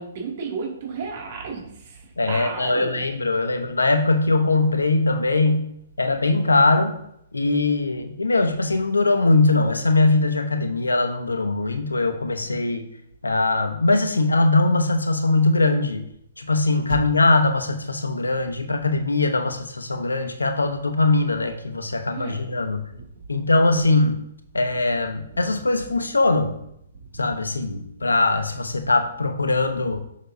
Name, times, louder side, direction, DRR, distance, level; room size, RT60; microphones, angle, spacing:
voice 1, 0.0-2.0 2.3-3.0 22.1-22.4, right 4 dB, 50° right, -2 dB, 2.3 m, -32 dB
voice 2, 2.2-5.7 6.0-6.9 7.3-12.8 13.2-16.0 16.4-22.8 23.3-24.2 24.5-26.5 27.2-30.0, left 2 dB, 90° left, 6 dB, 1.0 m, -21 dB
6.7 x 6.2 x 2.7 m, 0.75 s
hypercardioid pair, 130°, 0 cm